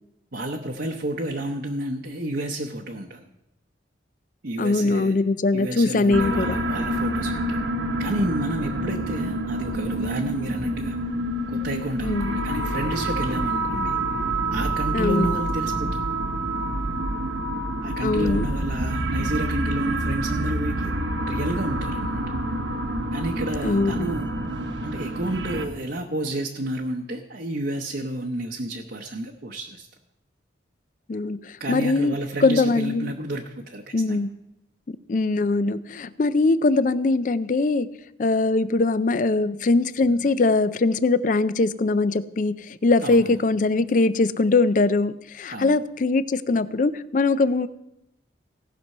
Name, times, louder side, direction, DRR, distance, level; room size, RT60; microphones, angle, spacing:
voice 1, 0.3-3.3 4.4-5.1 5.5-7.6 8.0-11.0 11.5-14.0 14.5-16.1 17.8-20.9 21.3-22.2 23.1-24.3 24.8-29.9 31.6-33.8 34.1-34.2 40.2-40.3 43.0-43.3 45.5-45.8, right 1 dB, 55° right, 1 dB, 0.8 m, -30 dB
voice 2, 4.6-6.6 12.0-12.3 14.9-15.3 18.0-18.5 23.6-24.1 31.1-33.1 33.9-34.3 35.1-37.9 38.2-47.7, left 3 dB, 45° left, 15 dB, 0.4 m, -22 dB
sound 1, 6.1-25.7, right 1 dB, 85° right, 1.1 m, -27 dB
17.5 x 6.0 x 5.4 m, 0.86 s
head